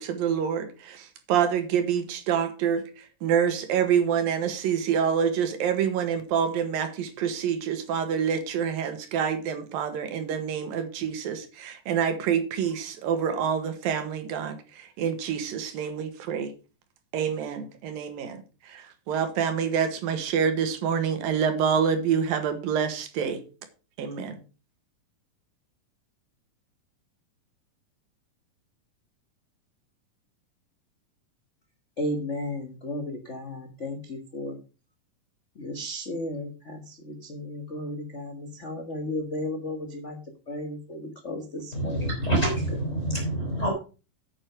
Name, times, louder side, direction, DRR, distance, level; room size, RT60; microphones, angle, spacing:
voice 1, 0.0-16.5 17.1-23.4 24.0-24.4, right 7 dB, 80° right, 9 dB, 3.3 m, -27 dB
voice 2, 32.0-33.0 33.3-34.5 35.6-36.5 37.3-38.3 38.6-39.8 40.0-40.1 40.5-41.0 41.2-41.4 41.8-42.1, left 1 dB, 70° left, 4 dB, 0.6 m, -33 dB
voice 3, 41.7-43.7, right 1 dB, 20° left, -1 dB, 4.8 m, -26 dB
9.2 x 8.7 x 5.1 m, 0.33 s
omnidirectional pair, 4.1 m